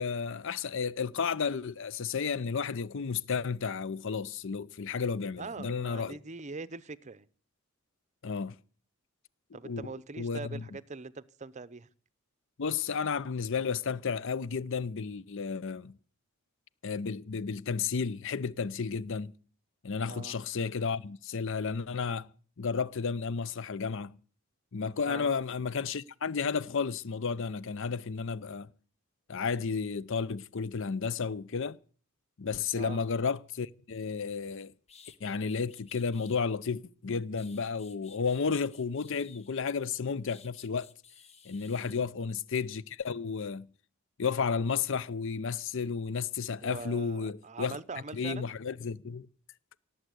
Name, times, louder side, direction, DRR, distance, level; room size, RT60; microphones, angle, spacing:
voice 1, 0.0-6.2 8.2-8.6 9.6-9.9 10.2-10.6 12.6-16.0 16.8-19.3 19.8-22.3 22.6-24.1 24.7-28.7 29.3-31.8 32.4-34.7 35.2-40.9 41.5-43.7 44.2-47.8 48.1-49.3, left 5 dB, 60° left, 0.6 m, -32 dB
voice 2, 5.4-7.3 9.5-11.9 20.1-20.3 25.1-25.3 32.7-33.0 41.8-42.1 46.6-48.5, right 4 dB, 30° right, 0.6 m, -42 dB
sound 1, 34.9-36.5 37.1-39.7 40.3-42.0, left 6 dB, 30° left, 1.0 m, -56 dB
18.0 x 7.9 x 8.1 m
head